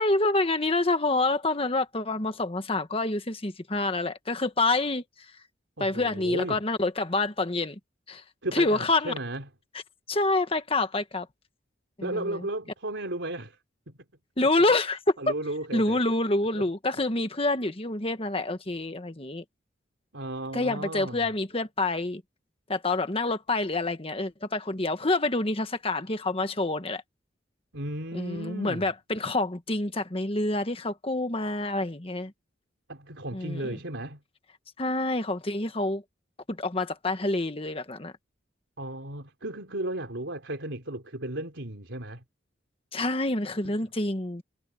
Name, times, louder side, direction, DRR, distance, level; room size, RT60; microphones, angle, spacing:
voice 1, 0.0-5.0 5.8-7.8 8.1-8.2 8.5-9.1 10.1-11.3 12.0-12.4 14.4-15.2 15.7-19.4 20.5-22.2 22.7-27.0 28.1-32.3 33.3-33.8 34.8-36.0 36.5-38.1 42.9-44.4, left 2 dB, 30° left, 1.5 m, -27 dB
voice 2, 5.8-6.6 8.4-9.5 12.0-13.6 13.9-14.0 14.4-14.5 15.2-16.0 16.5-16.6 20.1-21.3 27.7-28.9 32.9-34.2 38.8-42.2 43.6-43.7, right 1 dB, 85° right, 3.6 m, -35 dB
head